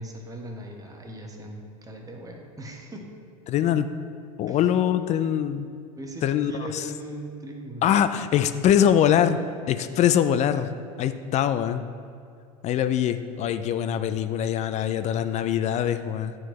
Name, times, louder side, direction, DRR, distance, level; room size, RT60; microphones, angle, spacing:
voice 1, 0.0-3.1 4.5-4.7 5.9-7.9, right 1 dB, 15° right, 1 dB, 1.1 m, -39 dB
voice 2, 3.5-3.9 4.4-5.7 6.2-6.8 7.8-9.4 9.7-10.7 11.0-11.8 12.6-16.3, left 10 dB, 35° left, 11 dB, 0.4 m, -23 dB
9.7 x 4.5 x 3.1 m, 2.5 s
hypercardioid pair, 85°, 20 cm